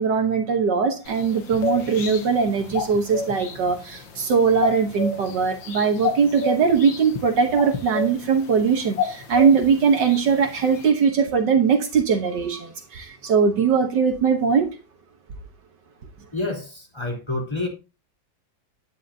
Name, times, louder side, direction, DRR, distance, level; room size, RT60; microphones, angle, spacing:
voice 1, 0.0-14.7, right 6 dB, 65° right, 1.8 m, -20 dB
sound 1, 1.1-10.9, left 4 dB, 90° left, 2.1 m, -31 dB
voice 2, 16.3-17.7, left 2 dB, 15° left, 3.5 m, -28 dB
10.5 x 9.7 x 2.8 m
omnidirectional pair, 2.0 m